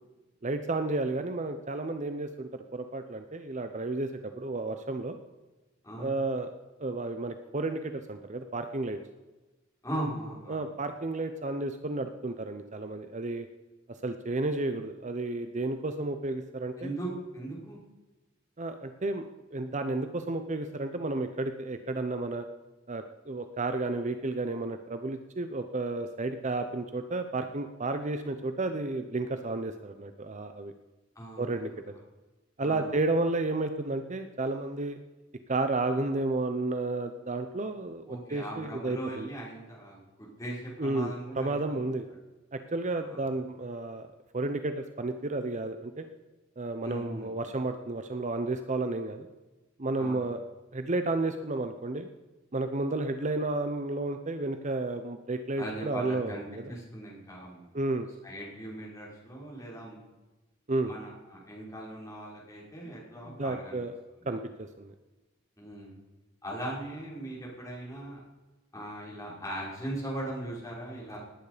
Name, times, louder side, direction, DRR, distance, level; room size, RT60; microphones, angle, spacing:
voice 1, 0.4-5.2 6.0-6.5 6.8-9.0 10.5-13.5 14.0-16.9 18.6-19.2 19.5-22.4 22.9-30.7 31.4-31.7 32.6-35.0 35.5-39.3 40.8-42.0 42.5-44.1 44.3-46.0 46.6-49.3 49.8-50.4 50.7-52.1 52.5-56.7 57.7-58.1 60.7-60.9 62.8-62.9 63.2-63.9 64.3-64.9, right 2 dB, 40° right, 8 dB, 0.8 m, -32 dB
voice 2, 9.8-10.6 16.8-17.8 31.2-31.7 32.6-32.9 38.1-41.9 42.9-43.2 46.8-47.3 50.0-50.3 55.6-57.6 58.2-60.0 60.8-63.8 65.6-66.0 66.4-68.2 68.7-71.2, right 1 dB, 15° left, -4 dB, 5.6 m, -39 dB
19.0 x 9.4 x 5.1 m, 1.1 s
head